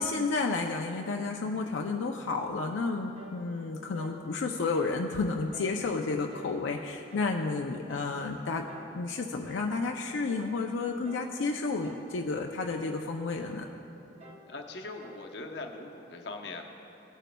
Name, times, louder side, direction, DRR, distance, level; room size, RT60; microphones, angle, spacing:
voice 1, 0.0-8.6 8.9-13.7, left 3 dB, 85° left, 2 dB, 0.5 m, -31 dB
sound 1, 3.2-3.5 3.9-4.2 4.7-5.0 5.5-5.8 6.3-6.6 7.1-7.4 7.9-8.2 8.7-9.0 9.5-9.8 10.3-10.6 11.0-11.4 11.8-12.2 12.6-12.9 13.4-13.7 14.2-14.5 15.0-15.3, equal, 35° right, 0.8 m, -51 dB
voice 2, 14.5-16.6, left 3 dB, 60° left, 2 dB, 0.8 m, -41 dB
17.0 x 9.1 x 2.2 m, 2.9 s
head